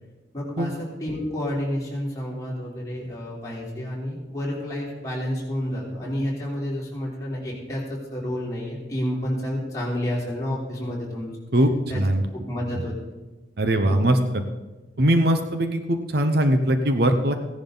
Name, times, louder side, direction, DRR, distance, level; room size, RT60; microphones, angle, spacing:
voice 1, 0.3-11.3 11.9-12.0 12.3-13.0 13.9-14.1, left 1 dB, 15° left, -5 dB, 3.6 m, -30 dB
voice 2, 11.5-12.2 12.8-12.9 13.6-14.4 15.0-17.3, right 1 dB, 55° right, 7 dB, 0.8 m, -21 dB
16.0 x 11.0 x 4.0 m, 1.2 s
head